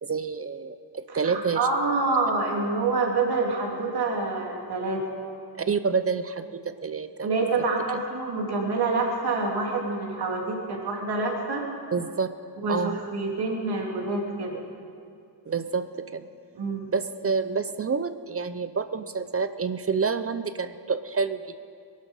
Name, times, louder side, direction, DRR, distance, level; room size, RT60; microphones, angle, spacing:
voice 1, 0.0-1.6 5.6-7.3 11.9-12.3 12.7-13.0 15.5-16.3 16.9-21.4, right 5 dB, 35° right, 11 dB, 0.6 m, -28 dB
voice 2, 1.1-5.0 7.2-11.6 12.6-14.6 16.5-16.8, right 3 dB, 70° right, -1 dB, 3.0 m, -27 dB
21.5 x 11.5 x 5.5 m, 2.4 s
wide cardioid pair, 95°, 40 cm